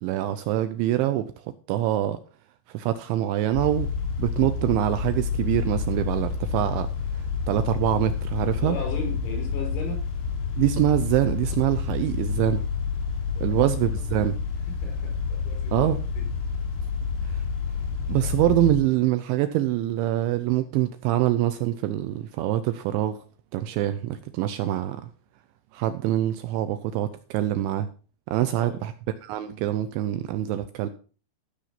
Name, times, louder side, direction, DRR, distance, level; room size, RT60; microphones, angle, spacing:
voice 1, 0.0-2.2 2.7-3.9 4.2-8.8 10.6-12.6 13.4-14.4 15.7-16.0 17.2-17.4 18.1-23.2 23.5-25.1 25.7-27.9 28.3-28.9 29.2-30.9, right 13 dB, 80° right, 2.7 m, -25 dB
sound 1, 3.5-18.7, left 6 dB, 70° left, 4.4 m, -29 dB
voice 2, 8.6-10.1 13.3-13.7 14.7-15.8 16.2-16.3 17.3-17.4 18.1-18.2 28.3-28.8, left 2 dB, 85° left, 7.8 m, -37 dB
15.5 x 6.7 x 5.8 m
omnidirectional pair, 5.9 m